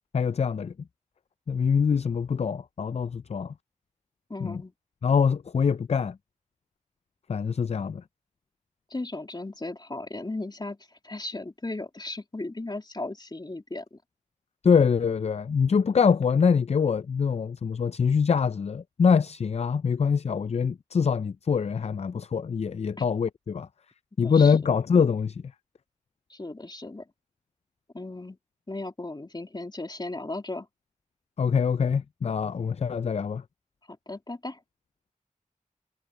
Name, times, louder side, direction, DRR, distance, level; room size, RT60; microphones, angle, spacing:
voice 1, 0.1-0.7 1.5-3.5 4.4-4.6 5.0-6.2 7.3-8.0 14.6-23.7 24.2-25.4 31.4-33.4, left 6 dB, 50° left, 0.4 m, -24 dB
voice 2, 4.3-4.7 8.9-14.0 23.0-23.1 24.2-24.6 26.3-27.1 27.9-28.4 28.7-30.7 33.9-34.6, left 2 dB, 30° left, 2.9 m, -36 dB
cardioid pair, 50°, 14 cm